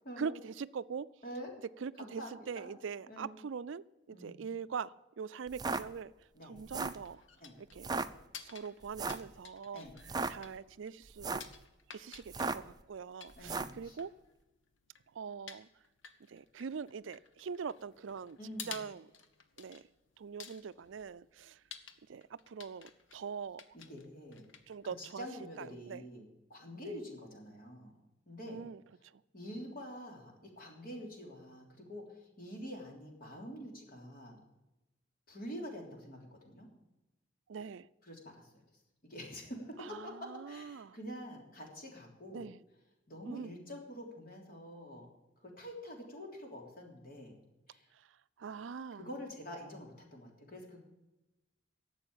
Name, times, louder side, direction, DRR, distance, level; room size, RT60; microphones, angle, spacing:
voice 1, 0.2-1.1 1.8-7.2 7.6-7.9 8.4-11.5 11.9-14.1 15.1-15.7 16.2-18.4 18.6-19.1 19.6-19.9 20.2-21.6 22.1-23.8 24.7-25.3 25.6-26.1 26.8-27.0 28.5-29.2 37.5-37.9 39.8-41.0 42.3-42.6 43.2-43.6 47.9-49.1, right 6 dB, 80° right, 17 dB, 0.4 m, -43 dB
voice 2, 2.0-2.7 3.1-3.3 4.1-4.3 6.3-6.6 7.4-7.5 9.7-9.9 13.4-14.0 18.4-18.8 23.7-24.4 24.8-27.9 28.3-28.6 29.3-34.4 35.3-36.7 38.1-38.5 39.0-40.1 40.5-42.4 43.1-45.1 45.4-47.4 47.7-47.9 49.0-50.8, equal, 50° left, 1 dB, 3.3 m, -46 dB
sound 1, 5.5-5.8 6.6-7.0 7.8-8.1 8.9-9.3 10.0-10.3 11.1-11.5 12.3-12.7 13.4-13.8, right 3 dB, 20° right, 0.5 m, -35 dB
sound 2, 6.5-25.5, left 7 dB, 85° left, 1.2 m, -54 dB
11.5 x 7.7 x 9.0 m, 1.0 s
head